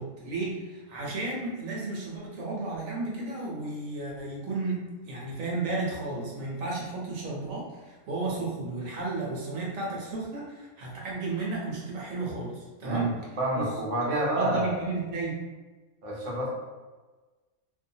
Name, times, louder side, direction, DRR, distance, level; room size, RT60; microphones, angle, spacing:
voice 1, 0.0-13.1 13.5-13.6 14.2-15.4, right 3 dB, 70° right, -4 dB, 1.1 m, -33 dB
voice 2, 13.4-14.8 16.0-16.5, right 1 dB, 50° right, -4 dB, 0.6 m, -28 dB
2.7 x 2.2 x 2.7 m, 1.3 s
omnidirectional pair, 1.5 m